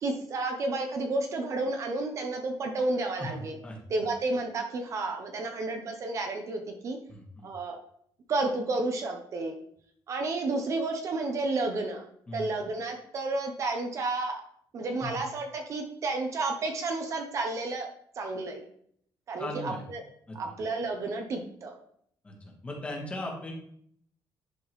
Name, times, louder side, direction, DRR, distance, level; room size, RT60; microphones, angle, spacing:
voice 1, 0.0-3.6 3.9-7.0 7.4-7.8 8.3-9.5 10.1-12.1 12.3-14.4 14.7-17.9 18.2-18.6 19.3-20.0 20.3-21.8, right 2 dB, 40° right, 4 dB, 0.7 m, -31 dB
voice 2, 3.2-3.8 7.1-7.5 12.3-12.5 15.0-15.2 19.4-19.8 20.3-20.4 22.2-22.3 22.6-23.5, left 1 dB, 15° left, -1 dB, 1.3 m, -38 dB
11.0 x 3.7 x 3.1 m, 0.67 s
cardioid pair, 175°, 8 cm